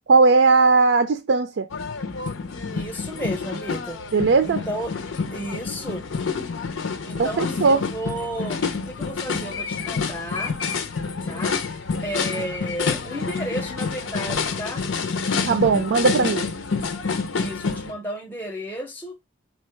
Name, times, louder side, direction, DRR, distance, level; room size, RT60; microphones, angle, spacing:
voice 1, 0.1-1.7 4.1-4.6 7.2-7.8 15.4-16.5, right 4 dB, 70° right, 0.4 m, -18 dB
sound 1, 1.7-17.9, left 5 dB, 90° left, 0.7 m, -28 dB
voice 2, 2.7-4.0 4.4-4.9 5.3-6.0 7.0-10.6 11.3-11.6 12.0-14.9 15.6-16.3 17.4-19.2, equal, 10° left, 0.6 m, -33 dB
4.4 x 2.3 x 4.3 m
head